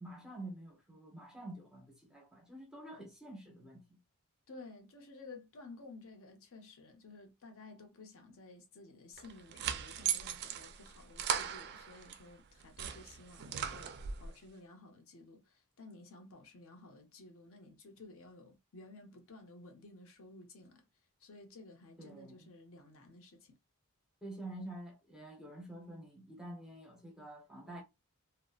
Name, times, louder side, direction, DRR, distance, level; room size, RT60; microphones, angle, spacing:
voice 1, 0.0-4.0 22.0-22.5 24.2-27.8, right 1 dB, 5° right, 0.7 m, -48 dB
voice 2, 4.5-13.9 14.2-20.8 21.2-23.5, left 2 dB, 65° left, 0.7 m, -54 dB
sound 1, 9.2-12.2 12.6-14.3, right 8 dB, 50° right, 0.3 m, -38 dB
2.6 x 2.0 x 2.3 m
head